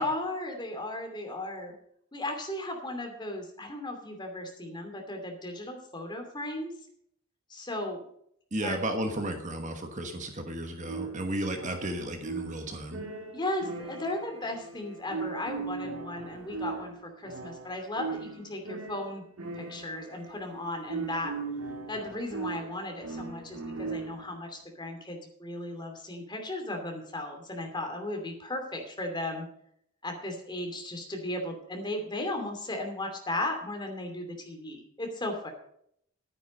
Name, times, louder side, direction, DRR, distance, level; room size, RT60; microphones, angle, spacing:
voice 1, 0.0-1.7 2.1-6.7 7.5-8.0 8.6-8.8 13.3-19.2 19.6-21.3 21.9-29.5 30.0-35.5, left 1 dB, 20° left, 3 dB, 2.7 m, -36 dB
voice 2, 8.5-13.0, right 1 dB, 35° right, 5 dB, 1.3 m, -33 dB
sound 1, 10.8-24.4, right 4 dB, 75° right, 2.2 m, -39 dB
11.5 x 9.7 x 5.3 m, 0.68 s
head